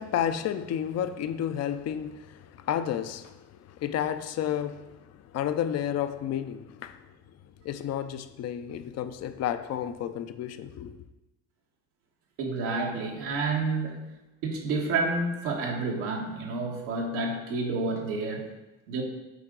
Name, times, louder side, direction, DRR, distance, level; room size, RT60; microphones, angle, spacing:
voice 1, 0.0-7.1 7.6-11.0, left 10 dB, 45° left, 0.5 m, -31 dB
voice 2, 12.4-14.1 14.4-18.4 18.9-19.0, right 3 dB, 90° right, 1.5 m, -29 dB
8.4 x 3.9 x 3.8 m
supercardioid pair, 80°, 35 cm